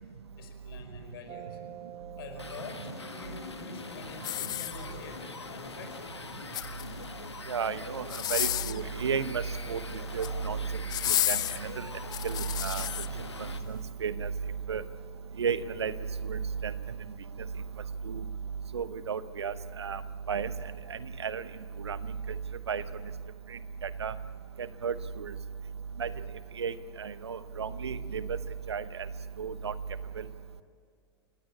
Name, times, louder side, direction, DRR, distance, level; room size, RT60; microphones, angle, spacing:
voice 1, 0.4-1.6 2.2-6.2, left 6 dB, 60° left, 5 dB, 4.9 m, -47 dB
sound 1, 1.3-6.5, right 11 dB, 40° right, 1.4 m, -49 dB
sound 2, 2.3-13.6, left 4 dB, 85° left, 1.6 m, -43 dB
sound 3, 4.2-5.2 6.3-7.1 8.0-8.9 9.9-10.4 10.9-13.1 13.7-13.8, left 13 dB, 30° left, 0.5 m, -32 dB
voice 2, 7.5-8.0 8.3-9.8 10.1-10.6 11.1-11.9 12.2-12.9 13.7-14.3 14.7-14.8 15.4-15.9 16.2-16.7 18.1-18.2 18.7-20.0 20.3-20.5 20.9-21.4 21.8-22.0 22.7-22.8 23.8-24.1 24.6-25.3 26.0-26.1 26.6-28.3 28.7-28.8 29.4-29.7, right 6 dB, 80° right, 15 dB, 1.0 m, -33 dB
29.0 x 17.0 x 8.5 m, 2.2 s
figure-of-eight pair, 90°, 14 cm